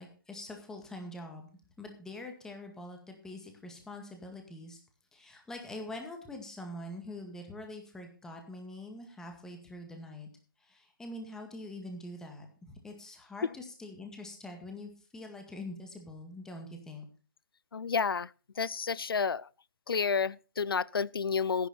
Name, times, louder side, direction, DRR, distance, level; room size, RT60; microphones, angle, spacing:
voice 1, 0.0-1.5 1.8-4.8 5.1-10.3 10.6-17.0, left 1 dB, 5° left, 2.0 m, -44 dB
voice 2, 17.7-18.3 18.6-19.5 19.9-21.7, left 6 dB, 90° left, 0.5 m, -30 dB
14.5 x 10.5 x 4.3 m
hypercardioid pair, 155°, 12 cm